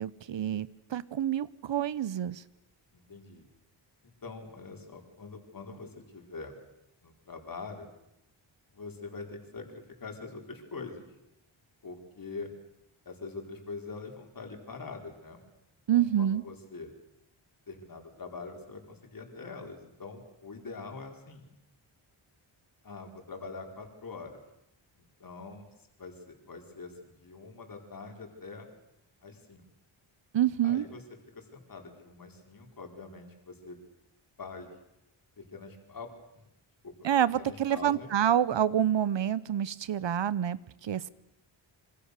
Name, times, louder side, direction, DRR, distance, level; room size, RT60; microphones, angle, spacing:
voice 1, 0.0-2.4 15.9-16.4 30.3-30.8 37.0-41.1, right 10 dB, 60° right, 18 dB, 1.0 m, -27 dB
voice 2, 2.9-3.5 4.0-6.6 7.0-7.9 8.7-11.1 11.8-12.5 13.0-15.4 15.9-16.9 17.7-21.5 22.8-24.4 25.0-25.7 26.0-28.7 29.2-29.6 30.6-31.0 31.3-33.8 34.4-34.7 35.4-36.1 36.8-36.9 37.4-38.1, left 4 dB, 40° left, 3 dB, 4.6 m, -44 dB
26.5 x 26.0 x 6.8 m, 0.84 s
wide cardioid pair, 160°, 49 cm